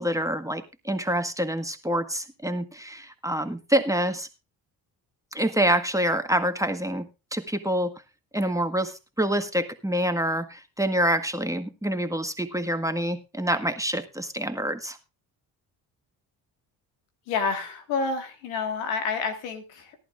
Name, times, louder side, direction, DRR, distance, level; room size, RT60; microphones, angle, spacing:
voice 1, 0.0-4.3 5.3-8.0 8.3-15.0, right 1 dB, 5° right, 7 dB, 1.5 m, -26 dB
voice 2, 17.3-20.0, left 4 dB, 90° left, 6 dB, 2.0 m, -29 dB
18.5 x 11.0 x 2.5 m, 0.29 s
supercardioid pair, 60°, 46 cm